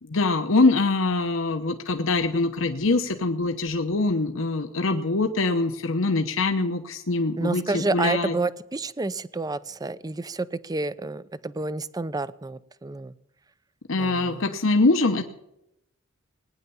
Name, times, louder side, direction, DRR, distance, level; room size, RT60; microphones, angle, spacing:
voice 1, 0.0-8.3 13.9-15.2, left 3 dB, 70° left, 6 dB, 1.0 m, -23 dB
voice 2, 7.4-13.1 14.0-14.4, right 3 dB, 20° right, 16 dB, 0.5 m, -29 dB
19.0 x 9.9 x 7.1 m, 0.82 s
head